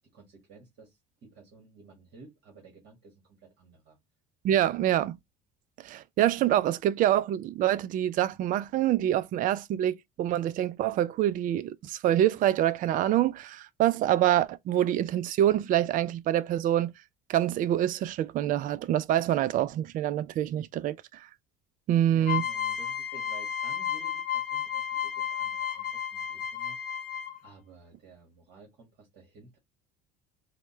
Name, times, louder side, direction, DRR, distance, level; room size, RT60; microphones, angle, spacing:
voice 1, 0.1-4.0 22.1-26.8 27.4-29.6, right 3 dB, 60° right, 1.6 m, -53 dB
voice 2, 4.4-5.1 5.8-16.9 17.3-21.3 21.9-22.4, right 12 dB, 45° right, 0.4 m, -26 dB
sound 1, 22.2-27.5, left 8 dB, 50° left, 1.0 m, -32 dB
4.8 x 2.2 x 3.0 m
supercardioid pair, 80°, 20 cm